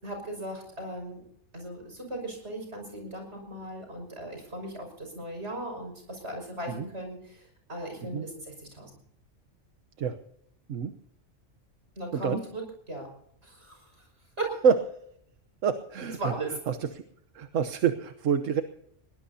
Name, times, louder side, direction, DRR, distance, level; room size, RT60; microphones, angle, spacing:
voice 1, 0.0-1.2 1.5-8.9 12.0-13.1 13.4-13.8 14.4-14.5 16.2-16.5, right 1 dB, 60° right, 3 dB, 6.3 m, -37 dB
voice 2, 12.1-12.4 14.6-14.8 15.6-16.3 16.7-17.0 17.3-18.6, right 7 dB, 80° right, 8 dB, 1.3 m, -27 dB
21.5 x 18.5 x 2.8 m, 0.71 s
omnidirectional pair, 1.3 m